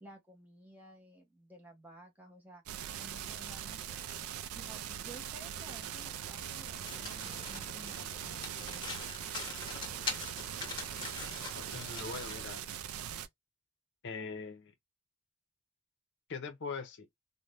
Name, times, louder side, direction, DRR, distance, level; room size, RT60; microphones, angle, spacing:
voice 1, 0.0-2.6 3.0-4.0 4.5-8.9, right 2 dB, 10° right, 0.8 m, -54 dB
sound 1, 2.7-13.3, right 9 dB, 70° right, 0.3 m, -41 dB
sound 2, 5.4-11.8, right 3 dB, 90° right, 0.8 m, -57 dB
Domestic sounds home sounds, 6.8-12.5, left 3 dB, 20° left, 1.0 m, -43 dB
voice 2, 11.5-12.6 14.0-14.7 16.3-17.1, left 4 dB, 55° left, 0.6 m, -41 dB
2.6 x 2.1 x 3.2 m
head